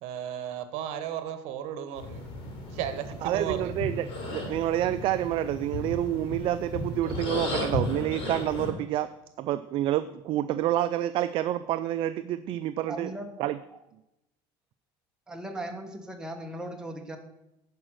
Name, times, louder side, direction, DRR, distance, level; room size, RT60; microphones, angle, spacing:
voice 1, 0.0-2.3 2.7-3.7, right 9 dB, 70° right, 11 dB, 1.0 m, -35 dB
sound 1, 2.0-8.7, left 2 dB, 55° left, 3.8 m, -35 dB
voice 2, 3.2-9.1 9.4-13.1 13.4-13.6, right 12 dB, 50° right, 12 dB, 0.4 m, -28 dB
voice 3, 12.9-13.3 15.3-17.2, right 1 dB, 5° right, 2 dB, 1.2 m, -37 dB
10.5 x 5.1 x 6.3 m, 0.88 s
cardioid pair, 130°, 11 cm